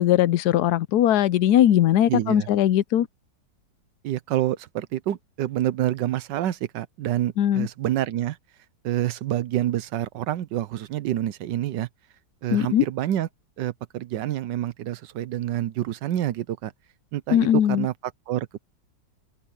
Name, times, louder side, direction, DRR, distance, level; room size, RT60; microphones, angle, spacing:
voice 1, 0.0-3.1 7.4-7.7 12.5-12.8 17.3-17.9, left 11 dB, 70° left, 1.1 m, -20 dB
voice 2, 2.1-2.5 4.0-8.4 8.8-11.9 12.4-13.3 13.6-16.7 17.1-17.9 18.3-18.6, right 13 dB, 90° right, 1.4 m, -27 dB
omnidirectional pair, 1.9 m